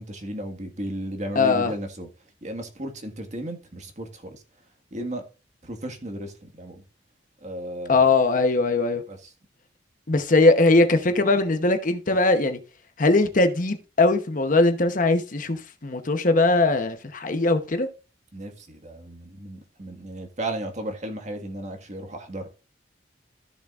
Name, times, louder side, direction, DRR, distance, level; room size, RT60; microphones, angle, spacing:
voice 1, 0.0-2.1 2.4-4.4 4.9-5.2 5.6-6.8 7.4-8.1 9.1-9.3 18.3-22.5, right 1 dB, 40° right, 1.7 m, -34 dB
voice 2, 1.4-1.7 7.9-9.0 10.1-12.6 13.0-17.9, left 3 dB, 45° left, 0.9 m, -20 dB
14.5 x 7.0 x 2.5 m
head